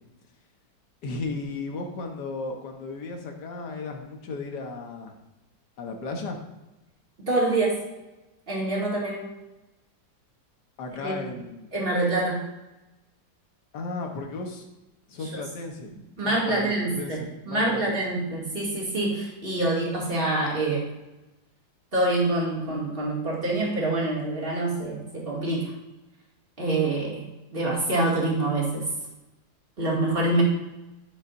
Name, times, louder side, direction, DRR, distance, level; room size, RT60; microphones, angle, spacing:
voice 1, 1.0-5.2 5.8-6.4 10.8-11.7 13.7-14.7 15.1-15.9 16.2-18.0, left 3 dB, 65° left, 3 dB, 1.7 m, -35 dB
voice 2, 7.2-7.8 8.5-9.3 11.0-11.2 11.7-12.4 15.2-15.4 16.2-20.8 21.9-25.7 26.6-28.9 29.8-30.4, right 2 dB, 30° right, -5 dB, 2.5 m, -26 dB
11.5 x 7.0 x 2.7 m, 1.0 s
omnidirectional pair, 2.1 m